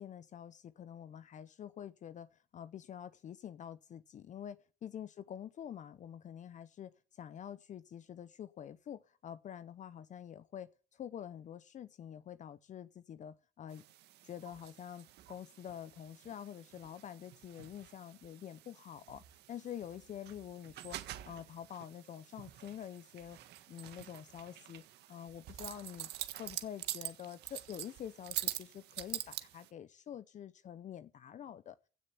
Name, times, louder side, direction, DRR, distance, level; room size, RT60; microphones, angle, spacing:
voice 1, 0.0-13.8 14.2-19.2 19.5-23.4 23.7-24.8 25.1-26.1 26.4-31.9, left 9 dB, 45° left, 0.7 m, -47 dB
sound 1, 13.7-29.7, right 14 dB, 80° right, 1.5 m, -46 dB
16.0 x 6.7 x 9.7 m
cardioid pair, 110°, 17 cm